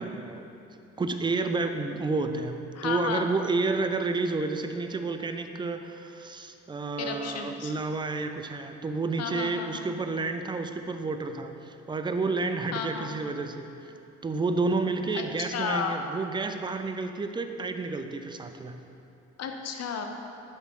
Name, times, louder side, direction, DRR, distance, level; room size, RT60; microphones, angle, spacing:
voice 1, 0.0-2.6 2.8-13.7 14.2-18.8, right 3 dB, 15° right, 7 dB, 0.4 m, -30 dB
voice 2, 2.7-3.3 7.0-7.7 9.2-9.9 12.7-13.1 15.1-16.0 19.4-20.1, left 6 dB, 55° left, 4 dB, 0.7 m, -33 dB
10.5 x 3.6 x 3.7 m, 2.8 s
cardioid pair, 90°, 30 cm